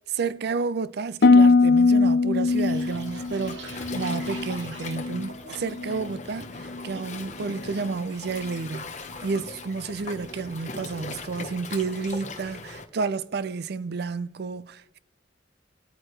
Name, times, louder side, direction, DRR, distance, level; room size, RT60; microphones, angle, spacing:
voice 1, 0.1-15.0, right 4 dB, 60° right, 0.5 m, -31 dB
Harp, 1.2-5.3 5.6-6.2 6.7-7.0, left 3 dB, 60° left, 0.6 m, -21 dB
Waves surf, 2.5-12.8, left 3 dB, 40° left, 1.0 m, -40 dB
sound 1, 2.7-6.2 6.5-7.0 7.4-7.8 8.1-9.4 9.7-9.9 10.3-10.7, right 3 dB, 85° right, 2.1 m, -47 dB
23.0 x 8.8 x 3.2 m
head